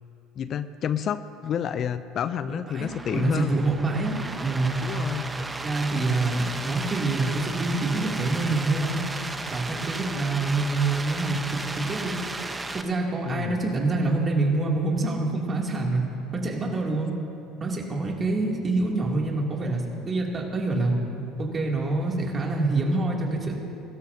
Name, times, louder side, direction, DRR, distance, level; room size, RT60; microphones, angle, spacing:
voice 1, 0.4-3.6 4.8-5.3 13.3-13.6, left 8 dB, 50° left, 13 dB, 0.5 m, -29 dB
voice 2, 2.7-4.8 5.4-9.0 9.5-12.2 12.7-16.0 16.4-17.1 17.6-20.9 21.4-23.6, right 2 dB, 30° right, -1 dB, 2.8 m, -26 dB
sound 1, 2.8-12.8, right 2 dB, 15° right, 0.9 m, -34 dB
22.5 x 13.0 x 2.8 m, 2.8 s
hypercardioid pair, 75°, 0 cm